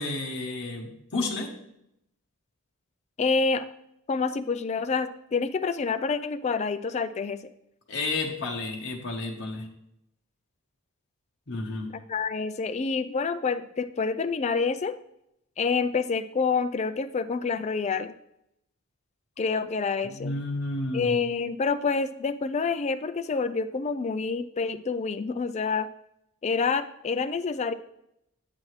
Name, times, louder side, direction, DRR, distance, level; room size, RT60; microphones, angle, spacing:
voice 1, 0.0-1.5 7.9-9.7 11.5-11.9 20.0-21.2, left 2 dB, 55° left, -1 dB, 1.0 m, -31 dB
voice 2, 3.2-3.7 4.1-7.4 12.1-15.0 15.6-18.1 19.4-20.3 20.9-25.9 26.4-27.7, left 4 dB, 30° left, 11 dB, 0.3 m, -27 dB
8.4 x 6.1 x 3.2 m, 0.80 s
head